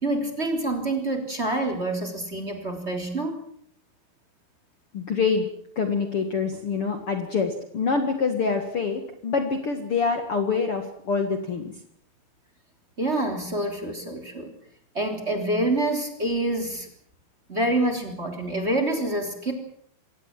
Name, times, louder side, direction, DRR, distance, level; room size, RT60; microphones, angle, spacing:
voice 1, 0.0-3.4 13.0-14.5 14.9-16.9 17.5-19.5, right 1 dB, 15° right, 6 dB, 2.7 m, -27 dB
voice 2, 4.9-5.5 5.7-11.7, left 5 dB, 85° left, 6 dB, 1.2 m, -26 dB
25.0 x 18.0 x 7.5 m, 0.64 s
omnidirectional pair, 5.9 m